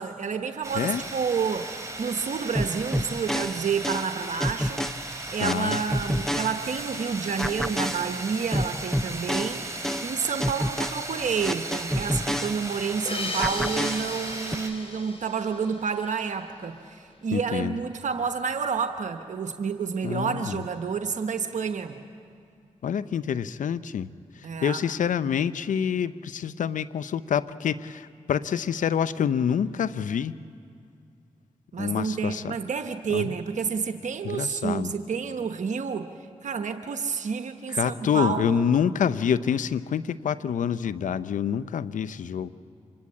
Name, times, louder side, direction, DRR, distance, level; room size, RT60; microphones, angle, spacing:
voice 1, 0.0-4.9 5.3-9.7 10.0-22.0 24.4-24.8 31.7-36.1 36.4-38.6, right 6 dB, 70° right, 7 dB, 1.1 m, -29 dB
sound 1, 0.6-14.7, right 2 dB, 25° right, 4.4 m, -37 dB
sound 2, 2.5-7.0 7.4-13.0 13.4-14.5, equal, 5° left, 0.7 m, -30 dB
voice 2, 5.4-5.8 17.3-17.8 20.0-20.6 22.8-24.1 24.6-30.3 31.8-32.5 33.1-33.3 34.2-34.9 37.7-42.5, left 8 dB, 75° left, 15 dB, 0.7 m, -27 dB
sound 3, 13.0-16.4, left 2 dB, 45° left, 5.2 m, -36 dB
25.5 x 22.0 x 8.7 m, 2.4 s
supercardioid pair, 40°, 13 cm